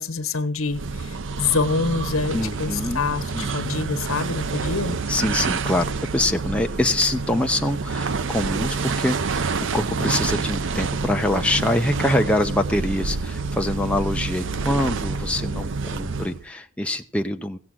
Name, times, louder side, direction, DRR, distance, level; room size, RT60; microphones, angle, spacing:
voice 1, 0.0-5.0, left 4 dB, 75° left, 9 dB, 1.3 m, -26 dB
sound 1, 0.7-16.5, right 4 dB, 60° right, 0.6 m, -28 dB
voice 2, 2.3-3.0 3.3-3.7 5.1-17.6, left 1 dB, 5° left, 4 dB, 0.6 m, -25 dB
16.0 x 7.5 x 7.5 m, 0.41 s
head